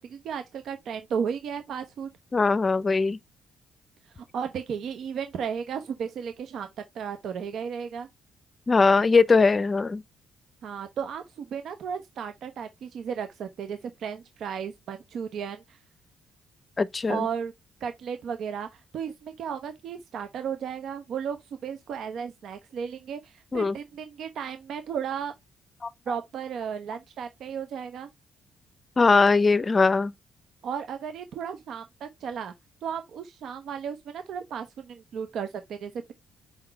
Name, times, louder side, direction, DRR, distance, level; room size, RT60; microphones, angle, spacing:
voice 1, 0.0-2.1 4.1-6.7 6.9-8.1 10.6-15.8 17.1-17.5 17.8-25.3 26.1-28.1 30.6-32.5 32.8-36.1, right 7 dB, 70° right, 0.9 m, -34 dB
voice 2, 2.3-3.2 8.7-10.0 16.8-17.3 23.5-23.8 25.8-25.9 29.0-30.1, left 4 dB, 30° left, 0.7 m, -21 dB
5.8 x 3.9 x 4.3 m
cardioid pair, 90°, 0 cm